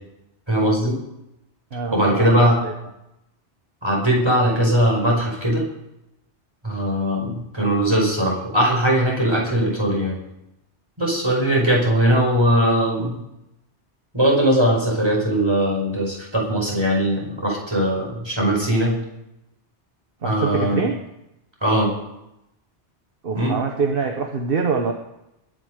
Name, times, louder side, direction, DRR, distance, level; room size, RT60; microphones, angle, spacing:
voice 1, 0.5-1.0 1.9-2.6 3.8-5.7 6.6-10.2 11.0-13.2 14.1-19.0 20.2-20.8 21.6-21.9 23.3-23.6, right 1 dB, 20° right, -1 dB, 5.3 m, -20 dB
voice 2, 1.7-2.7 20.2-21.0 23.2-24.9, right 4 dB, 50° right, 4 dB, 1.5 m, -24 dB
21.5 x 9.6 x 5.2 m, 0.86 s
omnidirectional pair, 1.2 m